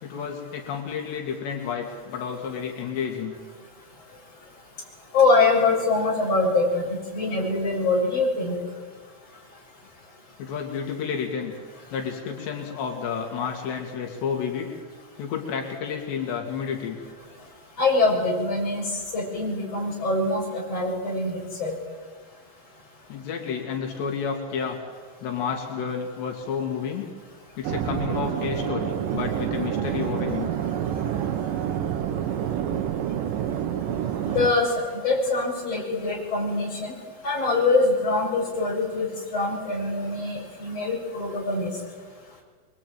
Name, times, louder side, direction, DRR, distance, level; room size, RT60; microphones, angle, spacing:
voice 1, 0.0-3.4 10.4-11.5 11.9-14.7 15.2-17.0 23.1-24.8 25.2-27.1 27.6-30.5, left 6 dB, 85° left, 1 dB, 4.7 m, -30 dB
voice 2, 5.1-8.5 17.8-18.9 19.1-21.3 21.6-21.7 34.3-36.9 37.2-41.7, left 3 dB, 35° left, -2 dB, 8.4 m, -24 dB
sound 1, 27.6-34.5, right 9 dB, 65° right, 2.4 m, -28 dB
26.5 x 23.5 x 9.2 m, 1.5 s
omnidirectional pair, 4.8 m